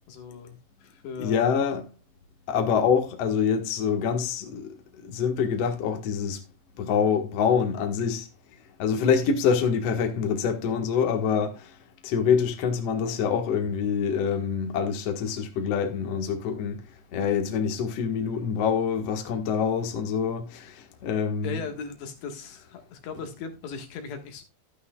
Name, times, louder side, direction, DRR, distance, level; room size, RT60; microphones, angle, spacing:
voice 1, 0.1-1.6 21.4-24.4, left 5 dB, 80° left, 3.7 m, -38 dB
voice 2, 1.2-1.8 2.5-6.4 6.8-8.3 8.8-11.8 12.0-16.8 17.1-21.6, left 6 dB, 55° left, 1.8 m, -26 dB
12.5 x 11.0 x 2.3 m
omnidirectional pair, 4.9 m